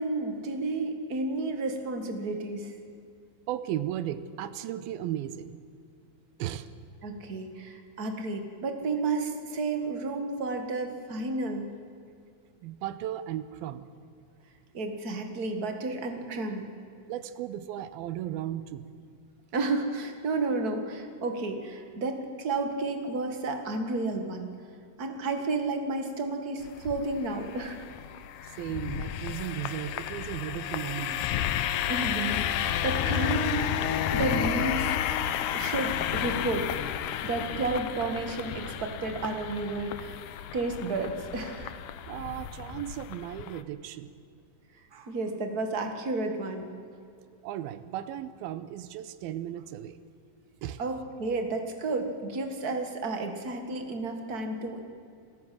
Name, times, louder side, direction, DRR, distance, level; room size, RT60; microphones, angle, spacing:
voice 1, 0.0-2.7 7.0-11.7 14.7-16.7 19.5-24.5 25.0-27.8 31.9-33.7 34.1-35.0 35.5-36.7 37.2-40.2 40.5-41.7 44.9-46.7 50.8-54.8, right 3 dB, 35° right, 5 dB, 1.5 m, -31 dB
voice 2, 3.5-5.6 6.4-6.7 12.6-13.9 17.1-18.9 28.5-31.3 37.6-37.7 42.1-44.2 47.4-50.0 50.6-50.8, right 12 dB, 85° right, 13 dB, 2.6 m, -35 dB
sound 1, 26.6-43.6, left 10 dB, 75° left, 2.0 m, -32 dB
26.5 x 14.5 x 7.7 m, 2.4 s
omnidirectional pair, 4.3 m